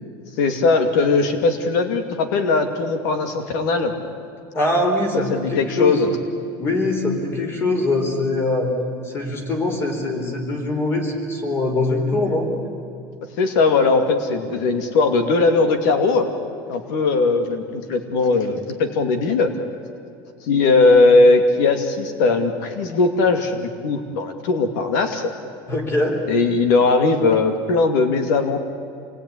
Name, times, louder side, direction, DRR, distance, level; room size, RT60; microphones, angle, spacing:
voice 1, 0.4-3.9 5.3-6.1 13.4-16.3 16.7-19.5 20.5-25.3 26.3-28.6, left 3 dB, 80° left, 7 dB, 2.5 m, -19 dB
voice 2, 4.5-6.0 6.6-8.7 9.0-12.5 25.7-26.2, left 2 dB, 25° left, 4 dB, 4.2 m, -22 dB
27.5 x 20.5 x 9.9 m, 2.6 s
cardioid pair, 170°, 10 cm